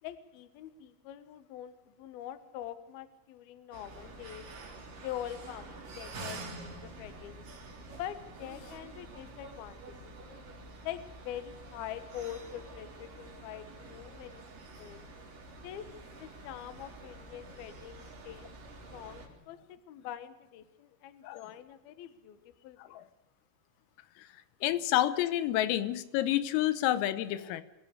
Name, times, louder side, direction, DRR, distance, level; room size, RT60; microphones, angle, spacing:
voice 1, 0.0-4.5 5.0-7.4 8.0-10.1 10.8-14.4 14.8-15.0 15.6-15.9 16.2-18.5 18.9-23.0, left 11 dB, 65° left, 12 dB, 2.6 m, -44 dB
sound 1, 3.7-19.3, right 2 dB, 45° right, 5.0 m, -48 dB
voice 2, 24.6-27.6, left 13 dB, 85° left, 14 dB, 3.7 m, -29 dB
27.0 x 16.0 x 6.8 m, 0.96 s
omnidirectional pair, 5.9 m